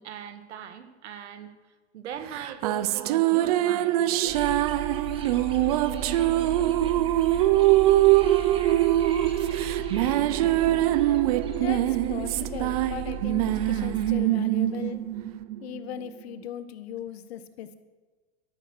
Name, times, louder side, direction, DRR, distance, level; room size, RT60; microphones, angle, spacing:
voice 1, 0.0-1.5 1.9-4.4, right 8 dB, 80° right, 9 dB, 2.0 m, -39 dB
sound 1, 2.3-16.0, right 15 dB, 35° right, 0.5 m, -23 dB
sound 2, 4.3-14.1, right 2 dB, 15° right, 1.6 m, -37 dB
voice 2, 11.5-15.0 15.6-17.7, left 10 dB, 65° left, 11 dB, 1.5 m, -38 dB
13.5 x 12.0 x 6.5 m, 1.3 s
supercardioid pair, 170°, 34 cm